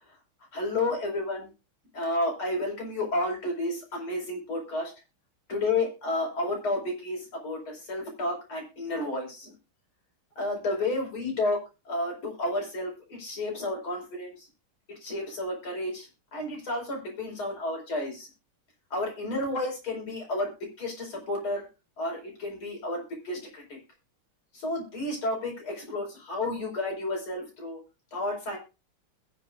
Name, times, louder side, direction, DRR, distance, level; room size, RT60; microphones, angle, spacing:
voice 1, 0.5-1.5 1.9-4.9 5.5-9.5 10.4-14.5 14.9-18.3 18.9-21.7 22.0-23.8 24.5-27.8 28.1-28.6, left 2 dB, 75° left, 0 dB, 5.9 m, -31 dB
22.0 x 7.4 x 2.5 m, 0.29 s
omnidirectional pair, 2.3 m